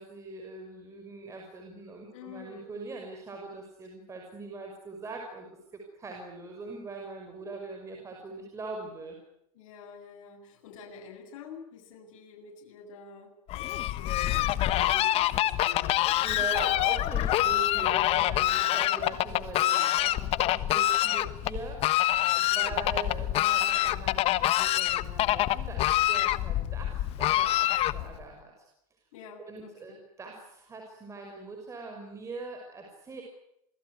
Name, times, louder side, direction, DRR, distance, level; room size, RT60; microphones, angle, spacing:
voice 1, 0.0-5.5 5.7-9.2 16.2-28.5 29.4-33.2, right 3 dB, 15° right, 1 dB, 6.0 m, -42 dB
voice 2, 2.1-2.7 9.5-16.6 17.0-17.1 18.5-18.8 19.5-19.9 22.5-22.7 29.1-30.0, left 6 dB, 60° left, 2 dB, 7.8 m, -48 dB
Fowl, 13.5-28.2, left 14 dB, 30° left, 1.2 m, -26 dB
27.5 x 20.0 x 9.8 m, 0.77 s
supercardioid pair, 145°, 19 cm